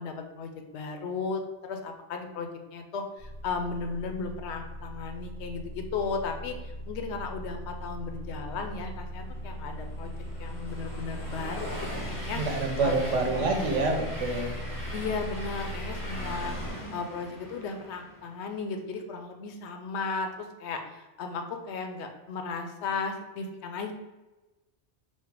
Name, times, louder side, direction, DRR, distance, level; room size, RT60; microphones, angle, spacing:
voice 1, 0.0-10.1 10.4-12.4 12.8-13.7 14.9-23.9, left 4 dB, 70° left, 5 dB, 0.8 m, -35 dB
sound 1, 3.2-16.7, equal, 35° right, 0.6 m, -39 dB
Train, 9.0-18.4, equal, 20° left, 0.7 m, -41 dB
voice 2, 12.4-14.5, right 3 dB, 90° right, 4 dB, 1.1 m, -27 dB
4.4 x 2.1 x 4.5 m, 1.1 s
omnidirectional pair, 1.2 m